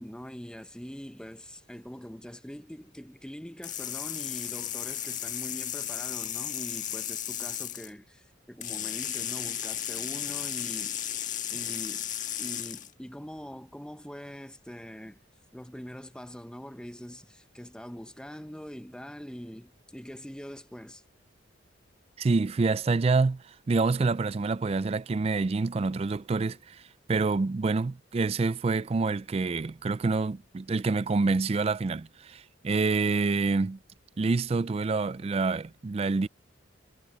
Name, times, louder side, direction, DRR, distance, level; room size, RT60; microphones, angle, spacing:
voice 1, 0.0-11.1 11.5-15.2 15.5-21.0, equal, 5° left, 0.7 m, -43 dB
sound 1, 3.6-7.9 8.6-12.9, left 10 dB, 40° left, 1.7 m, -34 dB
voice 2, 22.2-26.8 27.1-33.8 34.2-36.3, right 3 dB, 30° right, 0.3 m, -27 dB
head